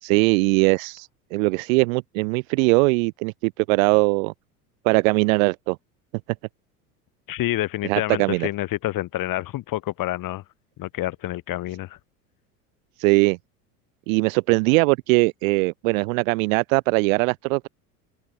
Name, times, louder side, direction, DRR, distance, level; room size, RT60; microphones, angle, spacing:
voice 1, 0.0-4.3 4.8-5.8 7.8-8.5 13.0-13.4 14.1-17.7, right 28 dB, 60° right, 1.6 m, -21 dB
voice 2, 7.3-10.4 10.8-12.0, left 15 dB, 45° left, 4.0 m, -28 dB
open air
hypercardioid pair, 80°, 45 cm